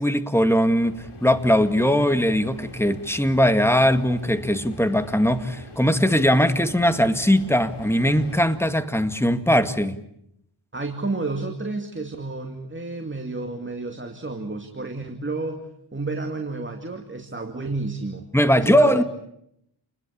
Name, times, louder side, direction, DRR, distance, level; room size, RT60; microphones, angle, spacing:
voice 1, 0.0-10.0 18.3-19.0, equal, 5° left, 9 dB, 2.0 m, -20 dB
sound 1, 0.6-8.5, left 3 dB, 85° left, 4.8 m, -43 dB
voice 2, 10.7-19.0, right 3 dB, 25° right, 5 dB, 2.4 m, -31 dB
29.0 x 21.0 x 8.5 m, 0.76 s
wide cardioid pair, 75°, 49 cm